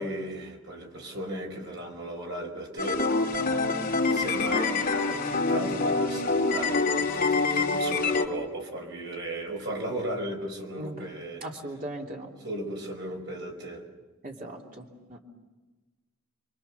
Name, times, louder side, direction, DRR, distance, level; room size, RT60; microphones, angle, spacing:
voice 1, 0.0-3.0 4.1-11.4 12.4-13.8, right 1 dB, 55° right, 1 dB, 5.1 m, -36 dB
sound 1, 2.8-8.3, left 3 dB, 40° left, 2.9 m, -26 dB
voice 2, 11.4-12.3 14.2-15.2, right 1 dB, 40° right, 0 dB, 3.0 m, -38 dB
29.5 x 24.0 x 6.9 m, 1.2 s
head